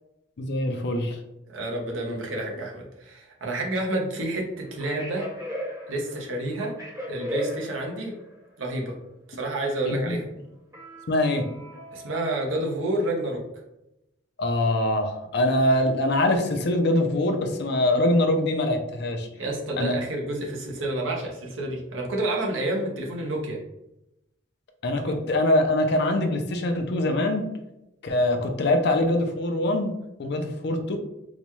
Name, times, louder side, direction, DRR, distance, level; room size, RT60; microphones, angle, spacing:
voice 1, 0.4-1.2 9.9-10.2 11.1-11.5 14.4-19.3 19.8-19.9 24.8-27.5 28.0-29.9 30.2-31.0, left 1 dB, 55° left, 6 dB, 0.4 m, -23 dB
voice 2, 1.5-5.3 5.9-6.7 7.1-8.1 8.6-9.0 9.3-10.3 11.9-13.4 19.3-23.6, right 1 dB, 80° right, -1 dB, 0.9 m, -29 dB
sound 1, 4.6-8.3 10.7-12.9, equal, 15° right, 0.7 m, -37 dB
4.0 x 2.2 x 3.0 m, 0.89 s
head